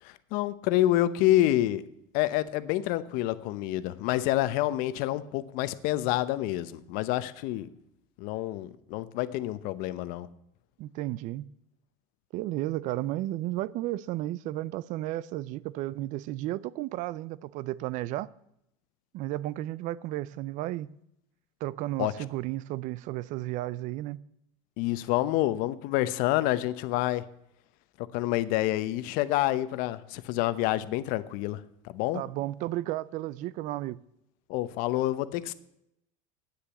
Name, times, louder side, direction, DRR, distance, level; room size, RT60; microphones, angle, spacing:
voice 1, 0.0-1.9 2.1-7.7 8.2-10.3 22.0-22.1 24.8-27.2 28.0-31.6 31.9-32.2 34.5-35.5, left 15 dB, 60° left, 0.8 m, -28 dB
voice 2, 10.8-11.4 12.3-18.3 19.1-20.9 21.6-24.2 32.1-34.0, right 15 dB, 50° right, 0.5 m, -33 dB
9.6 x 7.0 x 9.0 m
supercardioid pair, 135°, 16 cm